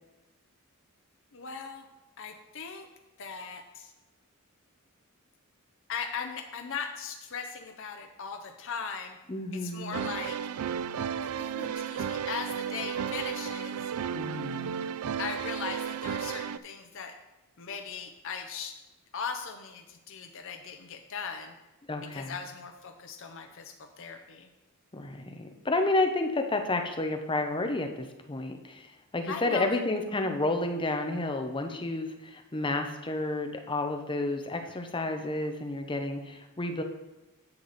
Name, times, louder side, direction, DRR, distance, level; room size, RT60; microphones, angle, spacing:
voice 1, 1.3-1.8 2.2-2.9 3.2-3.9 5.9-9.2 9.5-10.4 11.2-13.8 15.2-17.2 17.6-18.8 19.1-21.5 22.1-24.5 29.3-29.8, left 6 dB, 60° left, 4 dB, 0.6 m, -39 dB
voice 2, 9.3-10.1 14.1-14.7 21.9-22.3 24.9-36.8, left 2 dB, 20° left, 5 dB, 0.7 m, -31 dB
sound 1, 9.9-16.6, right 8 dB, 85° right, 0.4 m, -33 dB
9.7 x 6.6 x 4.1 m, 1.0 s
head